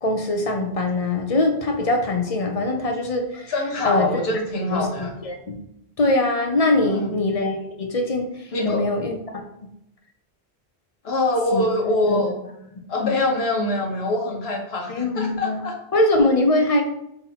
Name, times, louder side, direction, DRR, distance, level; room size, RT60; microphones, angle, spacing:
voice 1, 0.0-3.5 3.8-4.4 4.7-5.6 6.0-9.2 11.5-12.3 14.9-15.6 15.9-16.8, left 2 dB, 45° left, 3 dB, 0.6 m, -22 dB
voice 2, 3.5-5.1 6.8-7.1 8.5-8.9 11.0-12.3 12.9-15.7, left 2 dB, 80° left, 1 dB, 1.2 m, -24 dB
4.0 x 2.8 x 4.1 m, 0.80 s
omnidirectional pair, 1.0 m